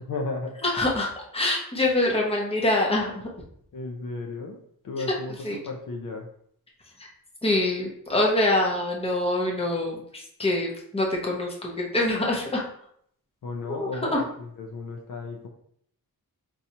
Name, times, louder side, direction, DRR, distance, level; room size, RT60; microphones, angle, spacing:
voice 1, 0.1-0.6 3.7-4.6 4.8-6.3 13.4-15.5, left 3 dB, 60° left, 1 dB, 0.5 m, -34 dB
voice 2, 0.6-3.3 5.4-5.6 7.0-7.1 7.4-12.6 13.8-14.2, left 2 dB, 15° left, -2 dB, 0.7 m, -25 dB
2.8 x 2.3 x 4.1 m, 0.66 s
wide cardioid pair, 150°, 37 cm